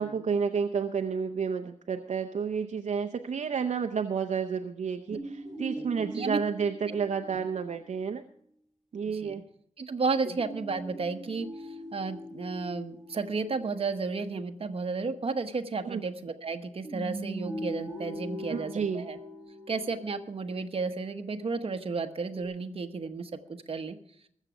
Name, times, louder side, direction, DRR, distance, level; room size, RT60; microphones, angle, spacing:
voice 1, 0.0-8.2 8.9-9.4 15.8-16.0 18.5-19.0, right 6 dB, 65° right, 5 dB, 0.7 m, -30 dB
sound 1, 5.1-7.8 10.4-14.2 16.8-20.6 22.3-22.4, equal, ahead, 2.3 m, -41 dB
voice 2, 5.8-6.4 6.9-7.0 9.1-9.3 9.8-11.5 11.9-19.2 19.7-24.0, right 4 dB, 50° right, 7 dB, 1.0 m, -33 dB
20.5 x 7.4 x 5.1 m, 0.68 s
wide cardioid pair, 130°, 13 cm